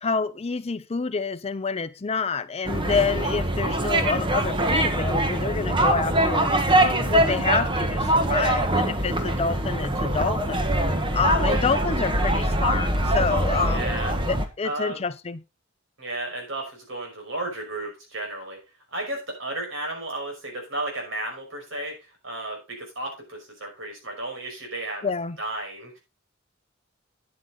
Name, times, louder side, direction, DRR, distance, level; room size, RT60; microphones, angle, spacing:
voice 1, 0.0-6.5 7.1-10.6 11.1-13.9 14.3-15.4 25.0-25.4, left 5 dB, 30° left, 0.6 m, -27 dB
sound 1, 2.6-14.4, right 1 dB, 25° right, 1.5 m, -23 dB
voice 2, 8.3-8.6 11.4-11.7 13.6-14.1 14.6-15.0 16.0-18.6 18.9-25.1 25.4-26.0, right 2 dB, 70° right, 5.5 m, -33 dB
9.7 x 8.9 x 4.0 m
head